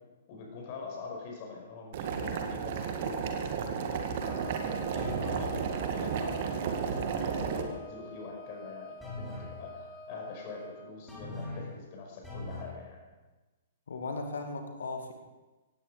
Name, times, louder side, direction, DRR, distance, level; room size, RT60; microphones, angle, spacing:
voice 1, 0.3-4.2 4.7-13.0, left 4 dB, 40° left, 0 dB, 5.4 m, -44 dB
Boiling, 1.9-7.6, right 6 dB, 45° right, 2.0 m, -33 dB
Wind instrument woodwind instrument, 4.2-10.9, equal, 20° left, 3.0 m, -49 dB
sound 1, 5.0-5.5 9.0-9.6 11.1-11.7 12.2-12.8, left 2 dB, ahead, 5.2 m, -40 dB
voice 2, 13.9-15.1, left 3 dB, 65° left, 5 dB, 2.2 m, -37 dB
17.5 x 16.5 x 5.0 m, 1.2 s
figure-of-eight pair, 115°, 0 cm